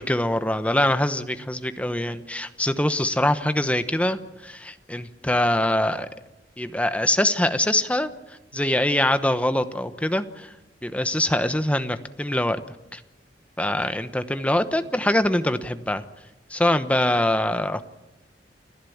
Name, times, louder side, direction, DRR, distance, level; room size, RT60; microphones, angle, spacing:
voice 1, 0.0-6.1 6.6-10.5 10.8-12.6 12.9-13.0 13.6-16.0 16.5-17.8, left 1 dB, 10° left, 10 dB, 1.0 m, -24 dB
29.5 x 11.5 x 8.6 m, 0.96 s
head